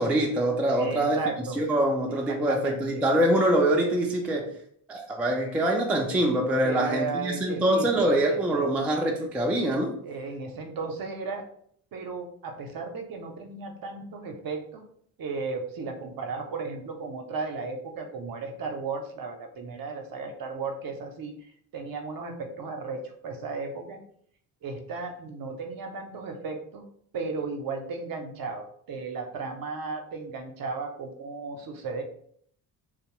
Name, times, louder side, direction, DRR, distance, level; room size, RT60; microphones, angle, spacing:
voice 1, 0.0-1.2 1.6-4.5 4.9-9.9, right 1 dB, 5° right, 0 dB, 0.3 m, -24 dB
voice 2, 0.7-1.7 2.1-3.0 6.6-8.7 10.0-11.5 11.9-14.8 15.2-24.0 24.6-26.8 27.1-32.0, right 4 dB, 45° right, 4 dB, 0.6 m, -35 dB
2.5 x 2.0 x 3.0 m, 0.64 s
supercardioid pair, 70°, 48 cm